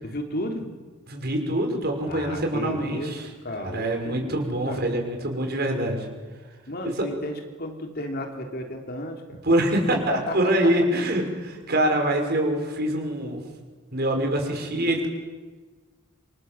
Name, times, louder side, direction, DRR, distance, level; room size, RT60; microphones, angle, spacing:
voice 1, 0.0-0.7 2.1-4.4 4.7-4.8 6.7-9.4 10.1-10.7, left 1 dB, 50° left, 3 dB, 3.5 m, -33 dB
voice 2, 1.1-3.2 3.7-6.1 9.4-13.4 13.9-15.1, right 1 dB, 50° right, 3 dB, 5.9 m, -24 dB
28.0 x 27.5 x 7.5 m, 1.4 s
head